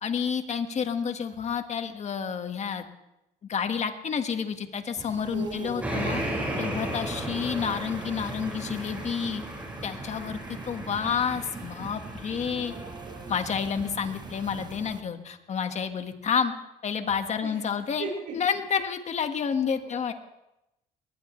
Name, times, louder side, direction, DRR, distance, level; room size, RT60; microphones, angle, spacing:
voice 1, 0.0-2.9 3.5-6.2 6.6-9.4 9.8-10.4 10.7-12.7 13.3-16.5 16.8-18.1 18.3-20.1, left 6 dB, 40° left, 7 dB, 1.6 m, -29 dB
sound 1, 4.9-15.0, right 4 dB, 25° right, 1.2 m, -43 dB
voice 2, 5.3-6.0 12.3-13.4 17.4-17.6 18.0-18.3 19.8-20.1, right 4 dB, 60° right, -5 dB, 6.2 m, -39 dB
sound 2, 5.8-14.7, right 1 dB, 10° right, 5.5 m, -36 dB
22.0 x 19.0 x 3.3 m, 0.90 s
cardioid pair, 110°, 17 cm